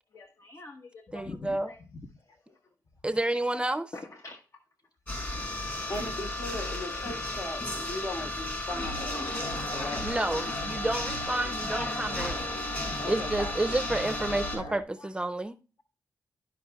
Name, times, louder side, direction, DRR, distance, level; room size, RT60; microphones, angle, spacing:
voice 1, 0.1-1.8 3.9-4.4 9.3-9.6 10.1-10.2, left 2 dB, 45° left, 1.1 m, -44 dB
voice 2, 1.1-1.7 3.0-3.9 10.0-12.4 13.1-15.6, right 2 dB, 15° right, 0.6 m, -30 dB
sound 1, 5.1-14.6, left 2 dB, 30° left, 4.3 m, -34 dB
voice 3, 5.9-10.0 13.0-13.5, left 1 dB, 65° left, 3.1 m, -38 dB
sound 2, 8.7-14.8, left 1 dB, 80° left, 1.3 m, -39 dB
12.5 x 5.1 x 2.3 m
cardioid pair, 55°, 7 cm